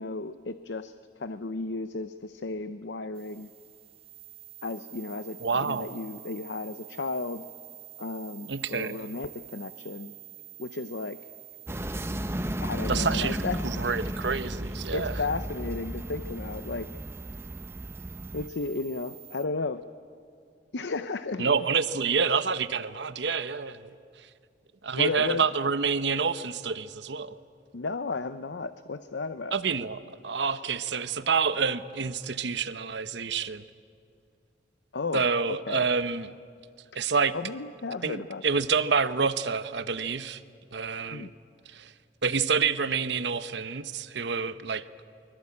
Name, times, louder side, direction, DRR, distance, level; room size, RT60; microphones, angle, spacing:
voice 1, 0.0-3.5 4.6-7.5 8.0-10.1 10.6-11.2 12.6-13.6 14.9-16.9 18.3-19.9 20.7-21.5 24.9-25.4 27.7-29.6 34.9-35.9 37.3-38.4 41.1-41.3, left 3 dB, 70° left, 12 dB, 0.7 m, -34 dB
sound 1, 3.1-19.4, right 16 dB, 30° right, 1.6 m, -48 dB
voice 2, 5.4-5.9 8.5-9.0 12.9-13.4 13.6-15.1 21.4-23.9 24.8-27.3 29.5-33.6 35.1-36.3 36.9-37.3 38.0-40.4 40.7-41.3 41.7-41.9 42.2-44.8, right 5 dB, 70° right, 13 dB, 0.9 m, -28 dB
sound 2, 11.7-18.5, right 1 dB, 15° right, 0.8 m, -34 dB
24.0 x 22.0 x 8.6 m, 2.4 s
head